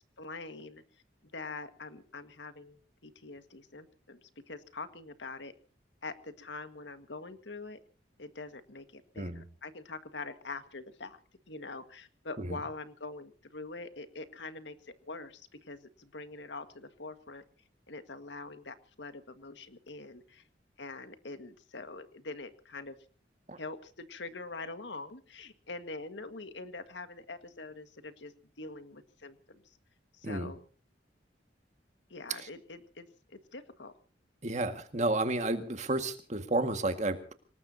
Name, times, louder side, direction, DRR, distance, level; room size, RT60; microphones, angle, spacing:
voice 1, 0.2-0.8 1.3-5.5 6.0-7.8 8.2-11.2 11.5-17.4 17.9-20.4 20.8-23.0 23.6-29.8 30.1-30.6 32.1-33.9, left 3 dB, 80° left, 9 dB, 1.7 m, -44 dB
voice 2, 34.4-37.3, right 2 dB, 40° right, 8 dB, 1.9 m, -31 dB
26.0 x 19.0 x 2.8 m, 0.39 s
head